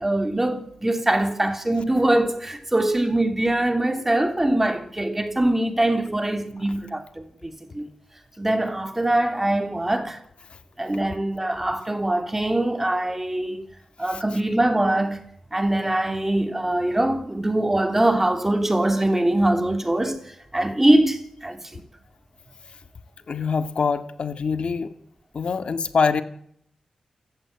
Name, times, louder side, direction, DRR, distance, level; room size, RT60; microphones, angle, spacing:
voice 1, 0.0-7.9 8.4-10.2 10.8-13.7 14.0-15.2 15.5-21.8, right 1 dB, 15° right, 3.2 m, -23 dB
voice 2, 23.3-24.9 25.3-26.2, left 5 dB, 60° left, 1.8 m, -24 dB
28.0 x 14.5 x 9.8 m
wide cardioid pair, 100°, 2 cm